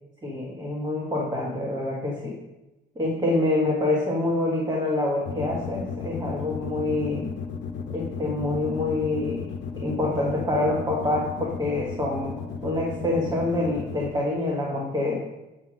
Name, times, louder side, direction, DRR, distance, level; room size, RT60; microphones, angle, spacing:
voice 1, 0.2-2.4 2.9-7.3 7.9-9.4 9.7-12.3 12.6-15.2, left 2 dB, 20° right, -3 dB, 1.7 m, -26 dB
sound 1, 5.2-14.1, left 6 dB, 65° left, 0.8 m, -34 dB
8.0 x 3.6 x 6.3 m, 1.0 s
cardioid pair, 90°, 20 cm